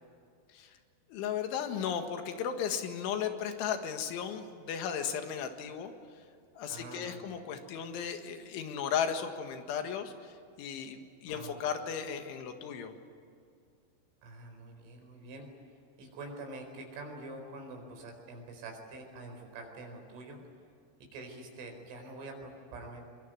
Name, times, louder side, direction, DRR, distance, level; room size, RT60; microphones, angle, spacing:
voice 1, 1.1-5.9 6.6-12.9, left 8 dB, 80° left, 6 dB, 4.1 m, -35 dB
voice 2, 6.7-7.3 11.3-11.6 14.2-15.5 16.0-20.4 21.1-23.0, right 2 dB, 80° right, 3 dB, 7.2 m, -46 dB
23.5 x 23.0 x 9.5 m, 2.4 s
omnidirectional pair, 5.5 m